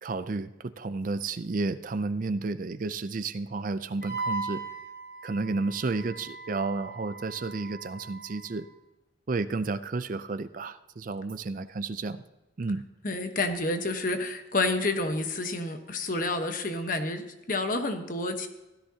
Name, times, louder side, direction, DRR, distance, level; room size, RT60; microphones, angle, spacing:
voice 1, 0.0-4.6 5.2-8.7 9.3-12.2 12.6-12.8, right 3 dB, 40° right, 12 dB, 0.4 m, -32 dB
Wind instrument woodwind instrument, 4.0-8.6, right 3 dB, 70° left, 2.1 m, -38 dB
voice 2, 13.0-18.5, left 2 dB, 45° left, 6 dB, 1.1 m, -29 dB
16.5 x 13.0 x 2.8 m, 1.0 s
head